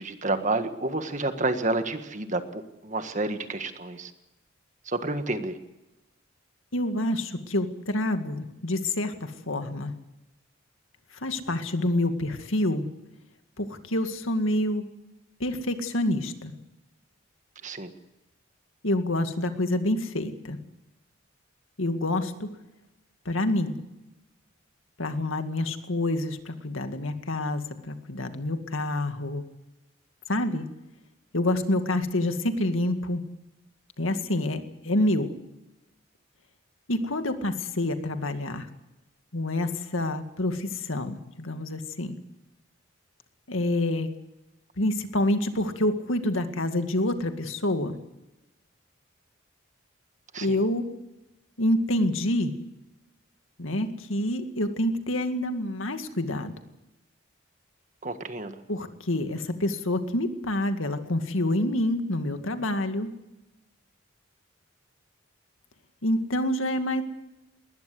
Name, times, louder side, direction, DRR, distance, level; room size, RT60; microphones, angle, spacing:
voice 1, 0.0-4.1 4.8-5.6 17.6-17.9 50.3-50.5 58.0-58.6, right 2 dB, 35° right, 8 dB, 1.6 m, -29 dB
voice 2, 6.7-9.9 11.1-12.9 13.6-14.9 15.4-16.5 18.8-20.6 21.8-22.5 23.3-23.8 25.0-29.4 30.3-30.7 31.3-33.2 34.0-35.3 36.9-38.7 39.3-42.2 43.5-44.1 44.8-48.0 50.4-50.9 51.6-52.5 53.6-56.5 58.7-63.1 66.0-67.0, left 1 dB, 75° left, 7 dB, 2.1 m, -27 dB
21.0 x 19.5 x 7.8 m, 0.97 s
head